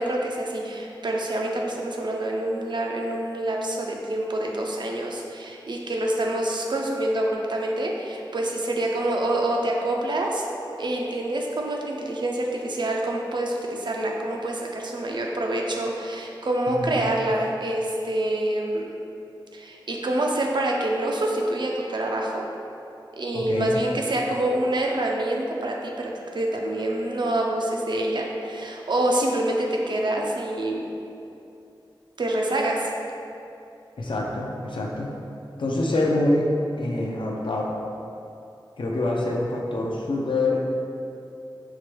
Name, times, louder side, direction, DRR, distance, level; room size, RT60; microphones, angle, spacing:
voice 1, 0.0-10.5 10.8-18.9 19.5-22.4 23.1-30.9 32.2-32.9, right 1 dB, 65° right, 0 dB, 0.4 m, -26 dB
voice 2, 16.7-17.1 23.3-23.8 34.0-35.1 35.6-36.5 36.8-37.6 38.8-40.6, left 2 dB, 75° left, -2 dB, 0.5 m, -25 dB
4.6 x 2.2 x 3.0 m, 2.7 s
wide cardioid pair, 70°, 8 cm